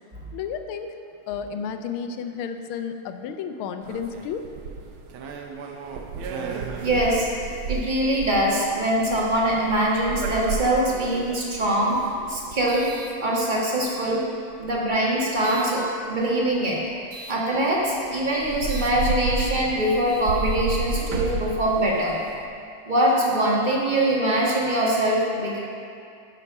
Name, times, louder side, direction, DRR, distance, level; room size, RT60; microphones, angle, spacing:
voice 1, 0.3-0.9 1.3-4.4, left 7 dB, 90° left, 7 dB, 1.5 m, -32 dB
sound 1, 3.8-13.8 14.5-15.7 17.1-17.4 17.9-18.0 18.3-22.5, right 4 dB, 80° right, 1.6 m, -32 dB
voice 2, 6.8-7.3 7.7-12.0 12.3-12.9 13.2-14.3 14.6-16.8 17.3-22.2 22.9-25.6, right 1 dB, 25° right, -4 dB, 1.3 m, -23 dB
11.0 x 5.3 x 5.3 m, 2.4 s
omnidirectional pair, 2.3 m